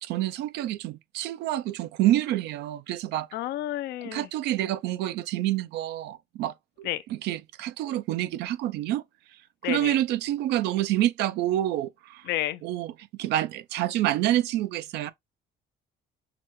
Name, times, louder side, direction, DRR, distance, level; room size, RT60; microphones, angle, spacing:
voice 1, 0.0-3.3 4.0-9.0 9.6-12.2 12.6-12.9 13.2-15.1, right 13 dB, 80° right, 0.5 m, -28 dB
voice 2, 3.3-4.3 6.8-7.0 9.6-10.0 12.3-12.6, left 14 dB, 80° left, 0.6 m, -30 dB
5.9 x 2.2 x 3.0 m
cardioid pair, 110°, 17 cm